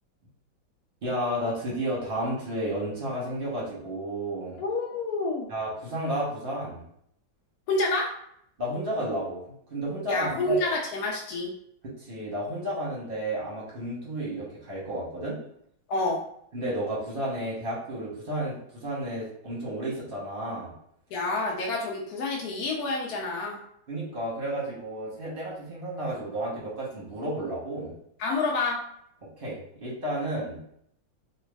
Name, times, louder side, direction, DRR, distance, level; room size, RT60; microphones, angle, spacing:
voice 1, 1.0-4.6 5.5-6.8 8.6-10.7 11.8-15.4 16.5-20.7 23.9-27.9 29.4-30.6, right 1 dB, 40° right, -6 dB, 0.9 m, -32 dB
voice 2, 4.6-5.5 7.7-8.1 10.1-11.5 15.9-16.2 21.1-23.6 28.2-28.8, left 2 dB, 70° left, -2 dB, 0.9 m, -28 dB
3.3 x 2.3 x 3.3 m, 0.71 s
omnidirectional pair, 2.0 m